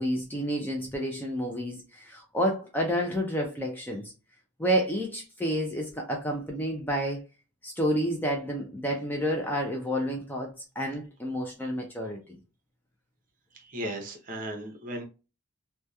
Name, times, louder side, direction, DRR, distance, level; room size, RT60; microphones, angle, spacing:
voice 1, 0.0-4.1 4.6-7.3 7.6-12.2, equal, 10° left, 0.3 m, -30 dB
voice 2, 13.5-15.0, right 1 dB, 40° right, 0.7 m, -36 dB
2.7 x 2.2 x 2.3 m
head